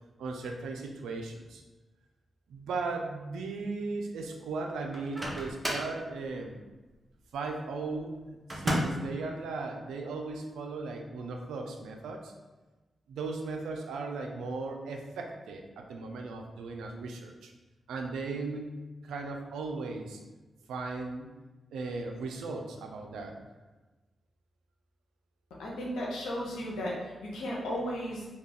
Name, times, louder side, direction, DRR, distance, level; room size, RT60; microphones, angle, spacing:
voice 1, 0.2-1.6 2.5-6.5 7.3-12.3 13.1-17.5 17.9-18.7 19.0-20.2 20.7-21.3 21.7-23.3, right 3 dB, 90° right, 2 dB, 0.3 m, -37 dB
Microwave oven, 4.9-6.0 8.5-9.1, equal, 30° right, 0.6 m, -32 dB
voice 2, 25.6-28.3, equal, 85° left, -3 dB, 0.6 m, -35 dB
2.2 x 2.2 x 3.4 m, 1.2 s
supercardioid pair, 40°, 0 cm